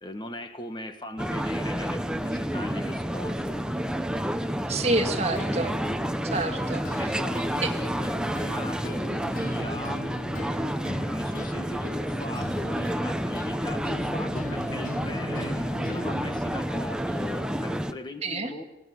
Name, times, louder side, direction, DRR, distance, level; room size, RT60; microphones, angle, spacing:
voice 1, 0.0-3.6 7.0-10.0 11.1-18.6, left 1 dB, 25° left, 7 dB, 1.5 m, -39 dB
sound 1, 1.2-17.9, equal, 5° right, 0.8 m, -30 dB
voice 2, 4.7-5.7 6.3-6.8 7.6-7.7 18.2-18.5, right 2 dB, 35° right, 5 dB, 1.8 m, -27 dB
sound 2, 5.4-16.4, left 2 dB, 45° left, 1.0 m, -40 dB
20.0 x 17.0 x 9.6 m, 0.99 s
head